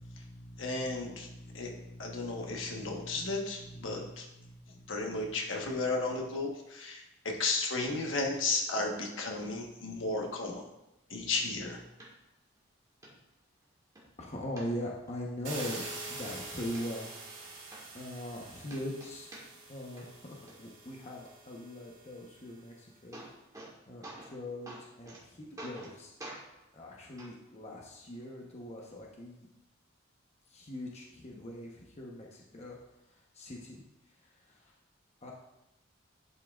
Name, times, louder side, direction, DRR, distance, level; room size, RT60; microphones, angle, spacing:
voice 1, 0.0-4.5 4.9-10.6 11.1-11.8, left 3 dB, 70° left, 0 dB, 1.2 m, -34 dB
sound 1, 12.0-12.1 12.6-12.7 13.0-13.1 13.6-14.0 14.6-15.1 15.6-15.7 16.1-16.8 17.4-17.5 17.7-18.4 18.7-19.7 20.0-20.5 22.6-22.7 22.9-23.7 24.0-24.4 24.7-25.2 25.6-25.9 26.2-26.4 27.2-27.3 28.2-28.3, right 1 dB, 15° right, 1.7 m, -47 dB
voice 2, 14.2-17.1 17.4-17.6 17.9-19.3 19.7-23.2 23.9-26.1 26.7-29.5 30.5-32.8 33.1-33.8 34.2-34.7 35.2-35.3, left 1 dB, 35° left, -2 dB, 0.9 m, -41 dB
sound 2, 15.4-22.3, right 3 dB, 65° right, 2.7 m, -45 dB
11.0 x 5.6 x 2.4 m, 0.92 s
head